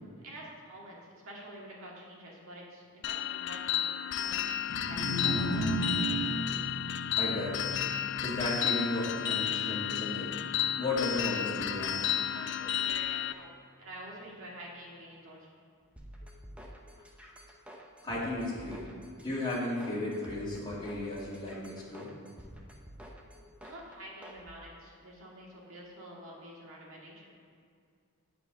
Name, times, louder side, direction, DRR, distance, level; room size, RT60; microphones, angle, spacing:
voice 1, 0.2-3.9 4.1-4.4 4.7-5.2 12.2-15.5 23.6-27.4, right 1 dB, 60° right, -3 dB, 2.0 m, -48 dB
sound 1, 3.0-13.3, left 11 dB, 50° left, 0.3 m, -32 dB
sound 2, 4.6-10.9, right 1 dB, 90° left, 1.4 m, -36 dB
voice 2, 7.1-7.6 8.2-10.3 10.8-12.0 16.9-17.0 18.0-18.9 19.2-22.1, left 2 dB, 20° left, -8 dB, 2.3 m, -34 dB
sound 3, 16.0-24.4, equal, 5° right, 0.7 m, -49 dB
8.4 x 4.8 x 6.8 m, 2.3 s
head